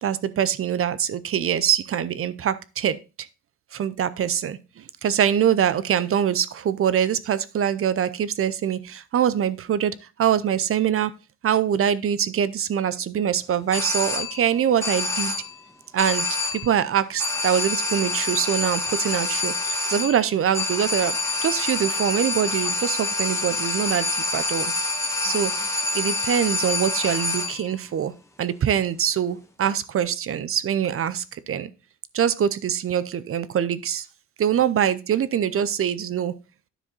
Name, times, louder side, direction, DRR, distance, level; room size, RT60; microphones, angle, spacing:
voice 1, 0.0-3.3 3.7-11.1 11.4-15.3 15.9-16.3 16.5-21.2 21.4-24.7 25.2-25.5 25.9-28.1 28.4-31.7 32.1-34.1 34.4-36.3, right 9 dB, 45° right, 16 dB, 0.6 m, -24 dB
sound 1, 13.7-14.5 14.8-15.6 16.0-16.8 17.2-27.7, left 2 dB, 10° left, 1.4 m, -27 dB
10.0 x 4.8 x 3.9 m, 0.30 s
cardioid pair, 90°, 30 cm